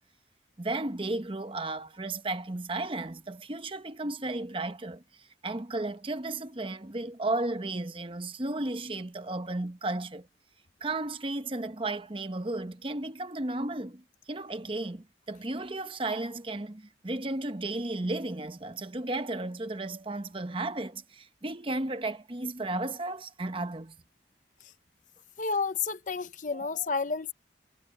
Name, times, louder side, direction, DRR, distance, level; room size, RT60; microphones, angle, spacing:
voice 1, 0.6-5.0 5.4-10.3 10.8-14.0 14.3-24.0 26.5-26.7, right 2 dB, 30° right, 1.0 m, -34 dB
voice 2, 25.4-27.3, left 4 dB, 45° left, 0.8 m, -30 dB
head